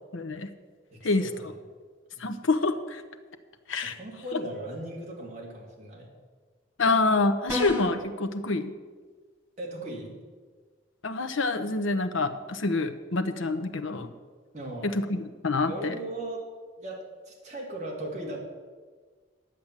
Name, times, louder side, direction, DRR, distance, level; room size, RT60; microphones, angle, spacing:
voice 1, 0.1-0.5 1.0-1.3 2.2-3.0 3.7-4.0 6.8-8.7 11.0-14.1 14.8-15.9, left 3 dB, 80° left, 8 dB, 0.8 m, -27 dB
voice 2, 0.9-1.6 2.2-2.3 3.8-6.1 9.6-10.2 14.5-15.0 15.7-16.5 16.8-18.4, right 1 dB, 35° right, -2 dB, 2.4 m, -38 dB
sound 1, 7.5-8.0, left 1 dB, 10° right, 1.3 m, -31 dB
10.5 x 7.7 x 7.3 m, 1.4 s
head